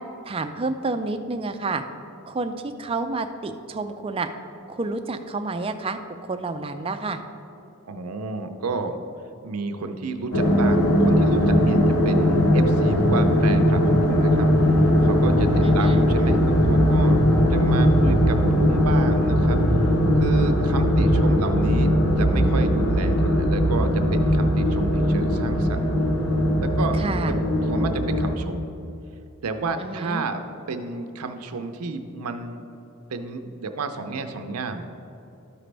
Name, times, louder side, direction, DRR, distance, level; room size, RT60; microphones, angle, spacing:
voice 1, 0.2-1.8 2.3-4.3 4.7-7.2 15.6-16.1 26.9-27.4 29.8-30.2, right 3 dB, 25° right, 8 dB, 0.4 m, -29 dB
voice 2, 7.9-9.0 9.4-17.2 17.5-19.6 20.2-25.9 26.6-27.0 27.3-27.4 27.7-28.7 29.4-30.4 30.7-32.7 33.1-34.9, right 3 dB, 85° right, 7 dB, 0.6 m, -31 dB
sound 1, 10.3-28.4, equal, 75° left, 1.0 m, -19 dB
13.0 x 5.1 x 3.3 m, 2.7 s
head